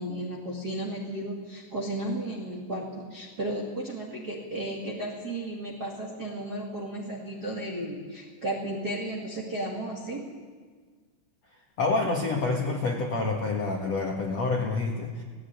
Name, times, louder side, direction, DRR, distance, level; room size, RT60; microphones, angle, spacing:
voice 1, 0.0-10.3, right 1 dB, 35° right, -3 dB, 1.8 m, -34 dB
voice 2, 11.8-15.2, left 3 dB, 60° left, -1 dB, 1.8 m, -27 dB
17.5 x 17.5 x 9.3 m, 1.5 s
omnidirectional pair, 5.5 m